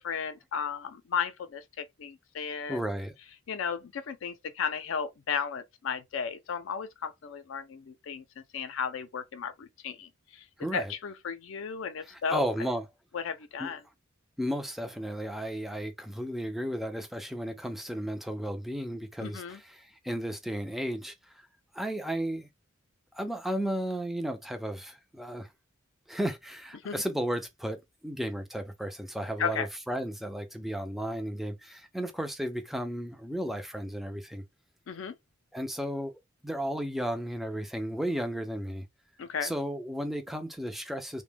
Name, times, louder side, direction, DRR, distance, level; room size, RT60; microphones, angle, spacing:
voice 1, 0.0-2.8 3.5-8.2 8.5-10.4 10.7-12.5 13.1-13.8 19.2-19.6 26.8-27.0 29.4-29.7 34.9-35.1 39.2-39.5, left 6 dB, 70° left, 0.4 m, -34 dB
voice 2, 2.7-3.1 10.6-10.9 12.1-12.9 13.6-13.7 14.4-21.4 21.7-22.5 23.1-25.5 26.1-34.4 35.5-38.9 39.4-41.2, equal, ahead, 0.3 m, -34 dB
2.1 x 2.1 x 3.1 m
head